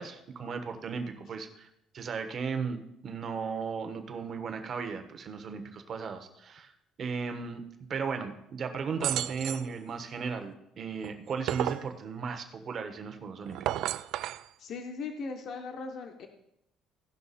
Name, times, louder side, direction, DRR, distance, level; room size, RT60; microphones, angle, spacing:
voice 1, 0.0-1.7 1.9-6.7 7.0-7.6 7.9-13.6, right 5 dB, 40° right, 6 dB, 1.2 m, -36 dB
sound 1, 9.0-9.7 11.0-11.9 13.5-14.4, right 13 dB, 65° right, 0.3 m, -32 dB
voice 2, 14.6-16.3, left 4 dB, 50° left, 4 dB, 1.0 m, -38 dB
16.5 x 5.8 x 4.2 m, 0.83 s
cardioid pair, 140°, 0 cm